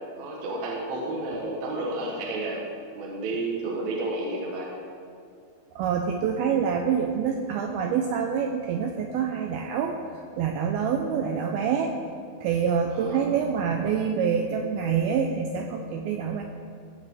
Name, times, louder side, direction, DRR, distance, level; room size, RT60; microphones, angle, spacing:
voice 1, 0.2-2.6 2.9-4.7 12.9-13.2, right 2 dB, 65° right, -2 dB, 2.8 m, -31 dB
voice 2, 5.8-10.0 10.4-11.9 12.4-16.4, right 7 dB, 85° right, 3 dB, 2.2 m, -26 dB
16.0 x 6.0 x 7.6 m, 2.3 s
omnidirectional pair, 5.2 m